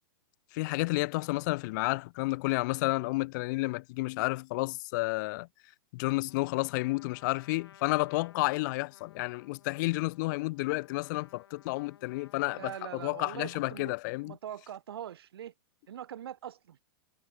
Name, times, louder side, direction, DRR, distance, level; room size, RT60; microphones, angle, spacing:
voice 1, 0.5-5.5 5.9-14.4, left 23 dB, 50° left, 0.7 m, -31 dB
Trumpet, 6.3-14.4, left 9 dB, 85° left, 6.3 m, -58 dB
voice 2, 12.5-13.9 14.2-15.5 15.9-16.8, right 10 dB, 80° right, 2.1 m, -42 dB
hypercardioid pair, 135°, 13 cm